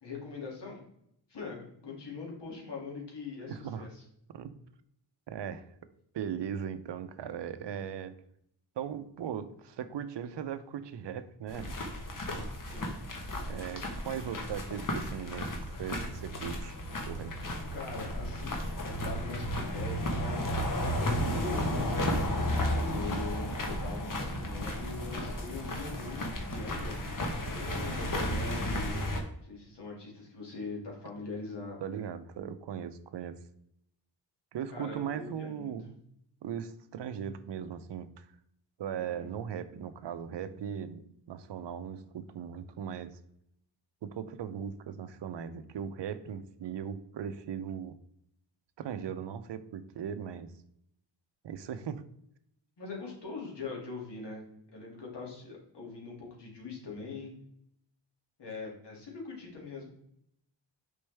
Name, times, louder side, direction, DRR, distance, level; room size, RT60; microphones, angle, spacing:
voice 1, 0.0-0.8 1.3-4.0 12.6-13.0 17.7-22.1 22.9-27.0 27.5-29.0 29.4-32.0 34.7-35.7 38.9-39.3 52.8-57.3 58.4-59.9, left 4 dB, 65° left, -2 dB, 2.5 m, -42 dB
voice 2, 3.5-3.9 4.3-4.5 5.3-5.7 6.1-8.1 8.8-11.8 13.5-16.8 17.1-17.3 31.8-33.4 34.5-36.0 36.4-38.3 38.8-43.2 44.0-48.0 48.8-50.5 51.4-52.0, right 8 dB, 65° right, 11 dB, 0.6 m, -38 dB
sound 1, 11.5-29.2, equal, 45° left, 1.2 m, -33 dB
6.6 x 5.4 x 3.4 m, 0.74 s
wide cardioid pair, 175°, 45 cm